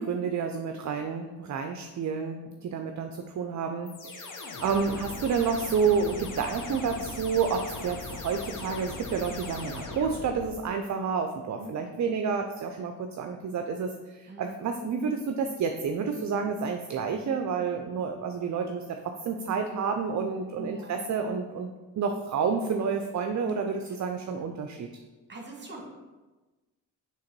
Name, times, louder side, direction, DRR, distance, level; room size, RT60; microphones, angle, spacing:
voice 1, 0.0-21.7 22.0-24.9, right 5 dB, 45° right, 5 dB, 0.4 m, -30 dB
sound 1, 3.9-10.7, left 3 dB, 50° left, 0.7 m, -39 dB
voice 2, 20.6-21.2 25.3-25.9, right 2 dB, 25° right, 0 dB, 1.3 m, -43 dB
3.7 x 3.0 x 4.5 m, 1.2 s
supercardioid pair, 50°, 39 cm